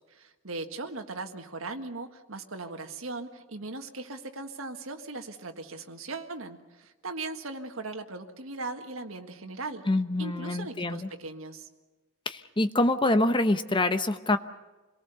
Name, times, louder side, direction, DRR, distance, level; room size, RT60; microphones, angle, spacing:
voice 1, 0.1-9.8 10.2-11.7, right 3 dB, 80° right, 5 dB, 1.7 m, -39 dB
voice 2, 9.9-11.1 12.3-14.4, left 2 dB, 25° left, 10 dB, 0.9 m, -25 dB
26.5 x 18.5 x 6.9 m, 1.2 s
head